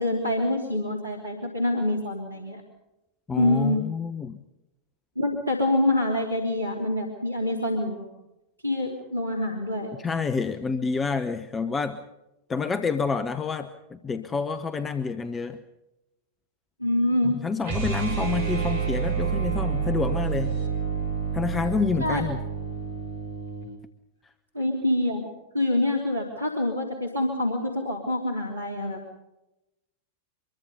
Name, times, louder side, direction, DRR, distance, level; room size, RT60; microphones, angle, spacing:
voice 1, 0.0-2.6 3.4-3.8 5.1-8.1 8.6-9.9 16.8-17.4 22.0-22.2 24.5-25.3 25.5-29.0, left 1 dB, 80° right, 1 dB, 3.2 m, -26 dB
voice 2, 3.3-4.4 10.0-12.0 12.5-15.6 17.2-20.6 21.3-22.4, left 5 dB, 20° left, 10 dB, 1.1 m, -28 dB
sound 1, 17.6-23.7, right 6 dB, 60° right, 5.6 m, -28 dB
25.0 x 22.5 x 5.5 m, 0.97 s
figure-of-eight pair, 90°, 0 cm